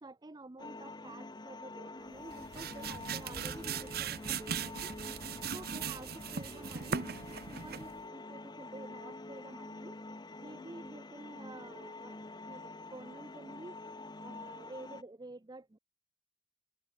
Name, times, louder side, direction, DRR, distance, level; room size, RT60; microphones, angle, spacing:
voice 1, 0.0-4.9 5.5-7.1 7.5-10.0 10.4-13.8 14.2-15.8, right 2 dB, 25° right, 0.6 m, -50 dB
sound 1, 0.6-15.0, left 2 dB, 25° left, 1.1 m, -47 dB
sound 2, 2.2-8.0, right 6 dB, 60° right, 1.1 m, -39 dB
head